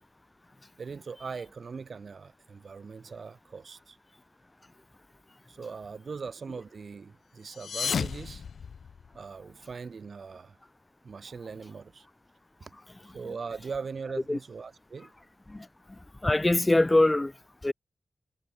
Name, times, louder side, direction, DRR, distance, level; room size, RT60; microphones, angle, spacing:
voice 1, 0.8-4.0 5.5-8.4 9.1-10.6 11.0-12.1 13.0-15.1, right 5 dB, 55° right, 3.1 m, -40 dB
sound 1, 7.4-9.3, left 6 dB, 85° left, 0.8 m, -33 dB
voice 2, 16.2-17.3 17.6-17.7, left 2 dB, 15° left, 0.4 m, -23 dB
wide cardioid pair, 160°, 0 cm